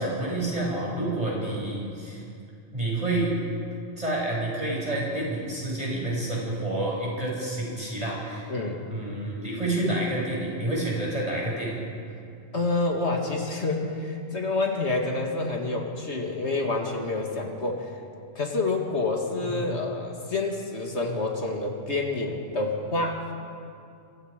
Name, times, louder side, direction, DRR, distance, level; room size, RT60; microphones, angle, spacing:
voice 1, 0.0-2.2 2.7-3.3 4.0-8.5 8.9-11.8 19.4-19.8, right 1 dB, 35° right, -4 dB, 7.0 m, -29 dB
voice 2, 8.5-8.9 12.5-17.9 18.4-23.3, left 2 dB, 85° left, 1 dB, 2.6 m, -28 dB
27.5 x 25.5 x 5.2 m, 2.5 s
omnidirectional pair, 1.1 m